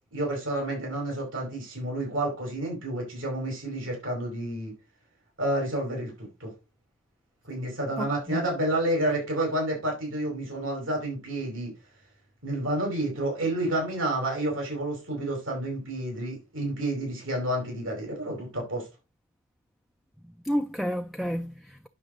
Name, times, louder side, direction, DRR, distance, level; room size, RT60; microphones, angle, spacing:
voice 1, 0.1-4.7 5.4-6.5 7.5-11.7 12.4-18.9, right 1 dB, 85° right, 5.0 m, -30 dB
voice 2, 8.0-8.5 20.4-21.9, equal, ahead, 0.4 m, -31 dB
9.8 x 6.1 x 3.8 m
head